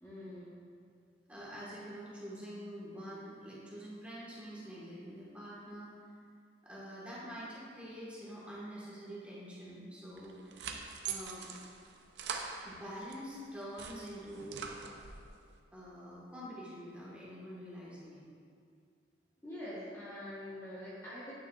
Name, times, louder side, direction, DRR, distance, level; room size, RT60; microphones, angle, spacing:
voice 1, 0.0-0.6 19.4-21.3, left 1 dB, 15° left, -9 dB, 1.1 m, -45 dB
voice 2, 1.3-6.1 6.6-10.7 11.1-11.5 12.6-14.8 15.7-18.2, equal, 5° right, -8 dB, 1.3 m, -46 dB
sound 1, 10.2-13.2 13.6-15.3, right 6 dB, 75° right, 0.5 m, -43 dB
9.2 x 5.9 x 2.4 m, 2.2 s
head